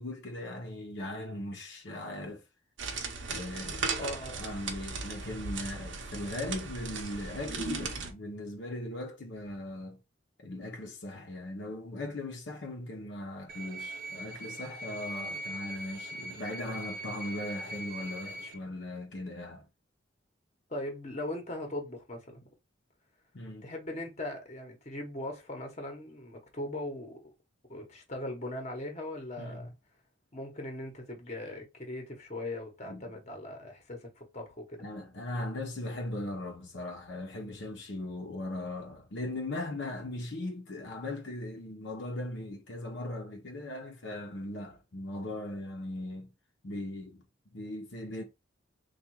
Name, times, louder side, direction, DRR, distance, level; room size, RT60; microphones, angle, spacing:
voice 1, 0.0-2.4 3.3-4.1 4.3-10.0 10.4-19.7 23.3-23.7 29.4-29.7 32.9-33.1 34.8-46.3 46.6-47.2 47.5-48.2, left 1 dB, 65° left, 0.8 m, -39 dB
sound 1, 2.8-8.1, right 4 dB, 70° right, 0.8 m, -37 dB
voice 2, 4.0-4.4 20.7-22.4 23.6-27.2 27.7-29.7 30.3-34.9, left 1 dB, 35° left, 1.0 m, -39 dB
sound 2, 13.5-18.5, right 1 dB, 50° right, 0.5 m, -41 dB
3.6 x 2.4 x 4.5 m
head